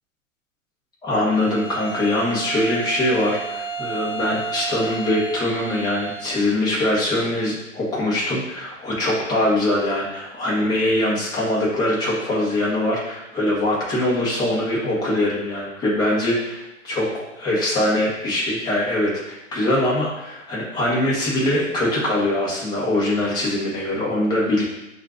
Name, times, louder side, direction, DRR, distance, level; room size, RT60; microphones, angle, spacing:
voice 1, 1.0-24.6, left 1 dB, 10° left, -6 dB, 0.8 m, -22 dB
Bowed string instrument, 1.2-6.5, right 4 dB, 30° right, 1.0 m, -32 dB
6.1 x 2.5 x 2.4 m, 0.92 s
hypercardioid pair, 140°, 39 cm